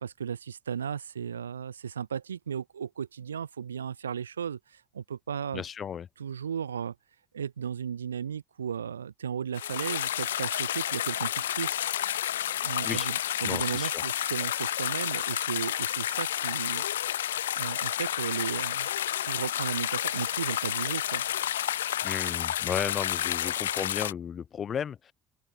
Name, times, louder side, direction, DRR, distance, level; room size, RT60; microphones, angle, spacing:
voice 1, 0.0-5.6 6.2-6.9 7.3-11.8 12.6-16.8 17.5-18.9 19.2-21.2, right 8 dB, 85° right, 0.6 m, -35 dB
voice 2, 5.5-6.1 12.8-13.1 13.4-14.0 22.0-25.1, left 8 dB, 45° left, 0.8 m, -34 dB
sound 1, 9.5-24.1, left 11 dB, 80° left, 0.5 m, -30 dB
open air
figure-of-eight pair, 50°, 0 cm